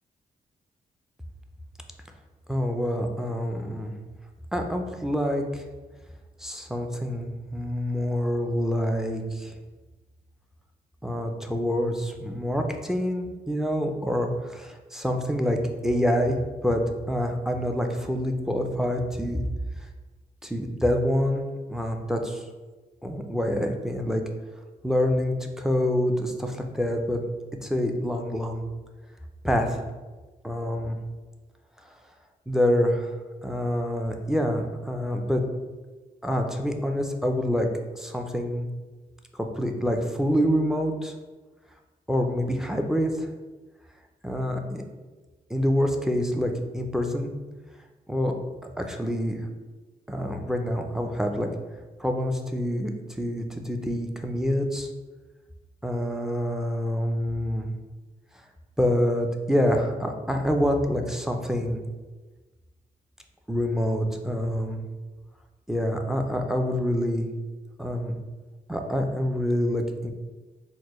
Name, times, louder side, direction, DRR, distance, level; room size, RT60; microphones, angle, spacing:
voice 1, 2.5-3.9 4.5-5.6 6.4-9.5 11.0-19.4 20.4-21.4 21.7-22.4 23.0-24.2 24.8-27.2 27.6-28.6 29.4-29.8 30.4-31.0 32.5-33.1 33.4-35.4 36.2-37.7 37.9-38.7 39.3-41.1 42.1-43.3 44.2-44.8 45.5-47.3 48.1-48.3 48.8-49.4 50.1-51.5 52.0-54.9 55.8-57.7 58.8-61.8 63.5-64.8 65.7-67.3 67.8-68.2 68.7-70.1, equal, 5° right, 3 dB, 0.4 m, -26 dB
4.2 x 2.0 x 3.0 m, 1.3 s
cardioid pair, 70°, 15 cm